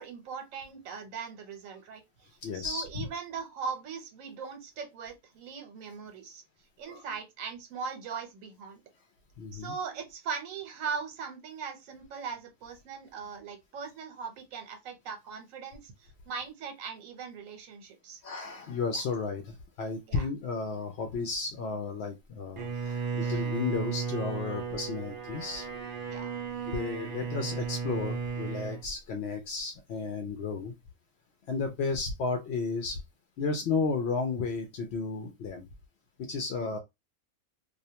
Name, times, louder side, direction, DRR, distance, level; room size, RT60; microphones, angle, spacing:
voice 1, 0.0-2.0 2.5-6.4 6.8-8.8 9.5-18.2 18.9-19.0 20.1-20.2 26.1-26.3 36.6-36.7, right 6 dB, 75° right, 1.1 m, -40 dB
voice 2, 2.4-3.1 6.9-7.0 9.4-9.7 18.2-25.7 26.7-30.7 31.5-33.0 33.4-35.7 36.3-36.8, left 4 dB, 65° left, 0.7 m, -33 dB
Bowed string instrument, 22.6-28.8, right 5 dB, 55° right, 0.6 m, -34 dB
2.4 x 2.1 x 2.7 m
omnidirectional pair, 1.4 m